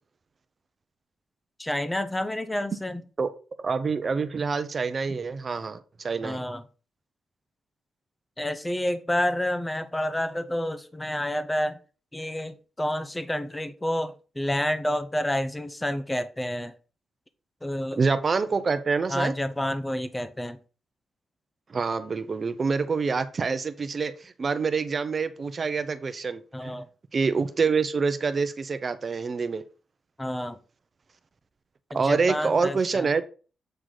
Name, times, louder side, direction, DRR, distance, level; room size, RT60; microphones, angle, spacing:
voice 1, 1.6-3.0 6.2-6.6 8.4-11.8 12.1-16.7 17.6-18.0 19.1-20.6 26.5-26.9 30.2-30.6 31.9-33.1, left 1 dB, 10° left, 0.7 m, -29 dB
voice 2, 3.6-6.4 18.0-19.3 21.7-26.8 27.1-29.6 31.9-33.2, right 4 dB, 35° right, 0.7 m, -26 dB
7.7 x 3.9 x 4.9 m
cardioid pair, 125°, 0 cm